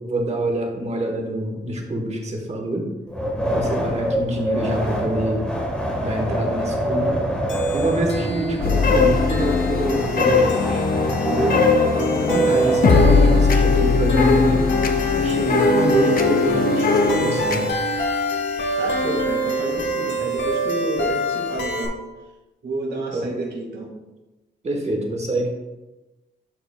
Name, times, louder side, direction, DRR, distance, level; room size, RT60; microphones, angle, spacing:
voice 1, 0.0-2.9 3.5-5.5 6.0-7.2 7.7-14.6 15.1-17.7 23.1-23.3 24.6-25.5, right 1 dB, 35° right, 2 dB, 1.2 m, -26 dB
Wind, 3.1-13.4, equal, 5° left, 1.3 m, -26 dB
sound 1, 7.5-21.9, equal, 75° left, 1.1 m, -25 dB
sound 2, 8.6-17.7, left 4 dB, 50° left, 0.6 m, -20 dB
voice 2, 18.8-22.0 22.6-23.9, right 2 dB, 65° right, -1 dB, 1.8 m, -29 dB
11.5 x 4.9 x 2.2 m, 1.1 s
wide cardioid pair, 150°, 19 cm